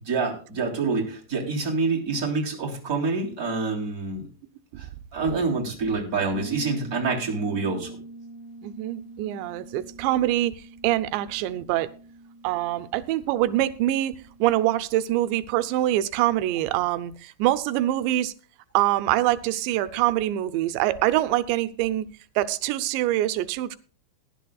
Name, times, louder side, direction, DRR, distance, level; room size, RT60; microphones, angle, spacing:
voice 1, 0.0-4.3 4.8-8.0, right 4 dB, 25° right, 3.2 m, -27 dB
Bass guitar, 6.3-15.9, right 2 dB, 80° left, 6.6 m, -45 dB
voice 2, 8.6-11.9 12.4-18.3 18.7-22.1 22.4-23.8, right 14 dB, 90° right, 2.9 m, -24 dB
19.5 x 10.5 x 2.3 m
omnidirectional pair, 4.9 m